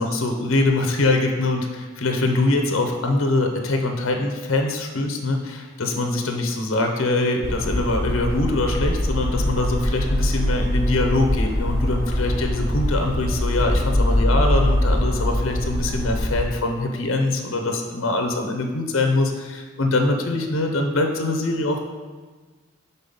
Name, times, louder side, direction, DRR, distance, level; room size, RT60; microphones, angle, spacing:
voice 1, 0.0-21.8, left 2 dB, 70° left, 4 dB, 0.7 m, -23 dB
sound 1, 7.4-16.4, left 1 dB, 55° left, 1.3 m, -23 dB
5.4 x 4.2 x 5.3 m, 1.4 s
head